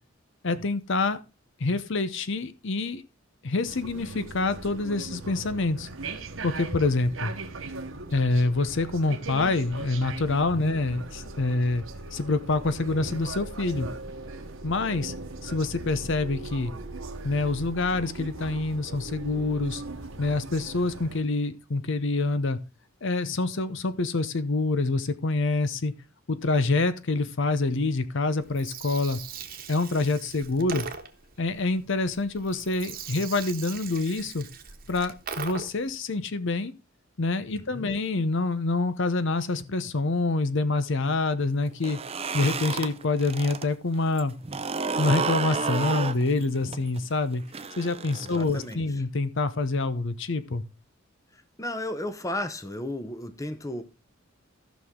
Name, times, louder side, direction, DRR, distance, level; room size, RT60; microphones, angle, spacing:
voice 1, 0.4-1.2 1.6-3.0 3.4-5.9 6.4-7.3 8.1-11.8 12.1-13.9 14.6-15.1 15.4-16.7 17.2-19.8 20.2-22.6 23.0-25.9 26.3-29.2 29.7-30.9 31.4-34.5 34.9-36.7 37.2-42.0 42.3-44.3 45.0-47.4 47.8-50.6, left 3 dB, 60° left, 0.8 m, -26 dB
sound 1, 3.7-21.2, right 2 dB, 70° right, 1.3 m, -39 dB
Gurgling, 28.4-35.9, right 6 dB, 45° right, 1.3 m, -40 dB
voice 2, 37.5-38.0 48.2-49.0 51.3-53.8, left 1 dB, 15° left, 0.8 m, -35 dB
sound 2, 41.7-43.7 44.0-48.7, right 5 dB, 30° right, 0.6 m, -31 dB
14.5 x 6.2 x 3.7 m
head